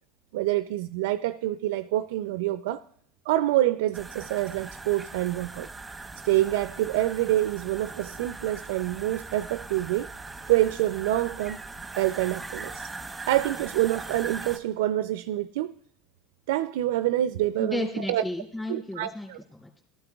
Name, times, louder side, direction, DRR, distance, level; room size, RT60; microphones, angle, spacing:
voice 1, 0.3-2.8 3.3-5.7 6.2-10.1 10.5-11.6 12.0-12.9 13.3-15.7 16.5-18.2 18.7-19.4, right 14 dB, 85° right, 0.4 m, -26 dB
sound 1, 3.9-14.6, right 3 dB, 10° right, 1.0 m, -40 dB
voice 2, 17.6-19.8, left 1 dB, 10° left, 2.7 m, -34 dB
18.5 x 13.0 x 2.4 m
supercardioid pair, 135°, 0 cm